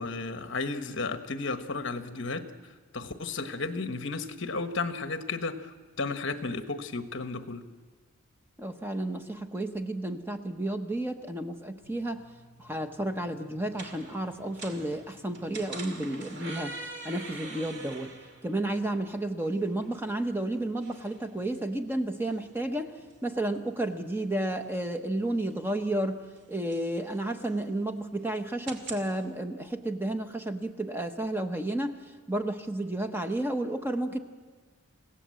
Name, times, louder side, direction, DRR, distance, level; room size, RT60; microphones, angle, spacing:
voice 1, 0.0-7.6, left 3 dB, 55° left, 8 dB, 1.2 m, -34 dB
voice 2, 8.6-12.2 12.6-16.8 17.0-18.1 18.4-22.9 23.2-26.2 26.5-32.0 32.3-34.2, right 1 dB, 10° right, 6 dB, 0.9 m, -32 dB
sound 1, 11.8-29.1, right 2 dB, 50° right, 2.5 m, -47 dB
28.5 x 16.5 x 7.7 m, 1.5 s
head